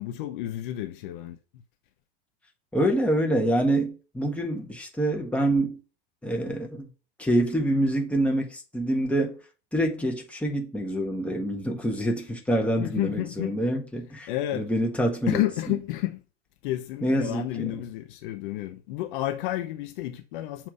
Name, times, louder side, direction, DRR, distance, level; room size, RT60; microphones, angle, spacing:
voice 1, 0.0-1.4 12.8-13.6 14.3-14.7 15.3-16.2 16.6-20.7, left 15 dB, 55° left, 0.7 m, -30 dB
voice 2, 2.7-5.8 6.2-6.9 7.2-9.4 9.7-15.4 17.0-17.8, right 1 dB, 5° left, 1.4 m, -26 dB
7.2 x 3.0 x 5.1 m
figure-of-eight pair, 80°, 31 cm